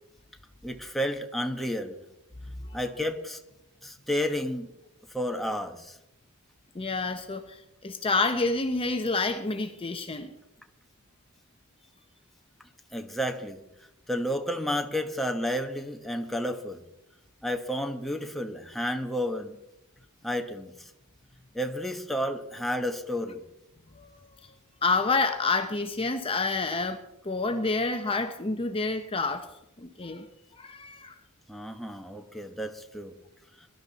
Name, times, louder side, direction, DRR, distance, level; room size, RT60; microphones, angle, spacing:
voice 1, 0.6-2.0 2.7-3.4 3.8-4.7 5.1-6.0 12.9-13.6 14.1-16.8 17.4-19.5 20.2-20.9 21.5-23.4 31.5-33.1, equal, ahead, 4 dB, 1.1 m, -31 dB
voice 2, 6.7-10.3 24.0-24.1 24.8-27.0 27.2-29.5 29.8-30.3 30.6-31.2, left 3 dB, 25° left, 6 dB, 0.8 m, -28 dB
22.0 x 12.0 x 4.1 m, 0.91 s
head